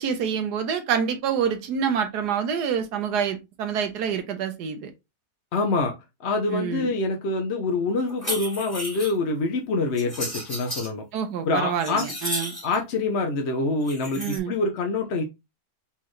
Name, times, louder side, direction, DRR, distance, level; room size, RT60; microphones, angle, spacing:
voice 1, 0.0-4.9 6.5-6.9 11.1-12.5 14.2-14.6, right 7 dB, 85° right, 1.4 m, -27 dB
voice 2, 5.5-5.9 6.2-11.0 11.4-12.1 12.6-15.2, left 3 dB, 55° left, 0.9 m, -25 dB
sound 1, 8.1-9.2 10.0-10.9 11.4-12.8 13.8-14.4, equal, 15° left, 2.2 m, -33 dB
4.2 x 4.0 x 3.1 m
omnidirectional pair, 1.7 m